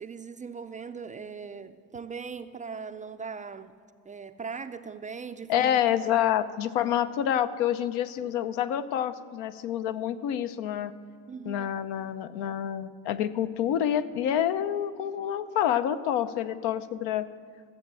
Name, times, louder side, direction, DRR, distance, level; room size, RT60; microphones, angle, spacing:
voice 1, 0.0-3.7 4.1-6.5 8.2-8.4 11.3-11.8, right 5 dB, 20° right, 0.3 m, -40 dB
voice 2, 5.5-10.9 11.4-17.3, left 10 dB, 80° left, 0.8 m, -27 dB
15.0 x 7.8 x 7.5 m
cardioid pair, 110°, 40 cm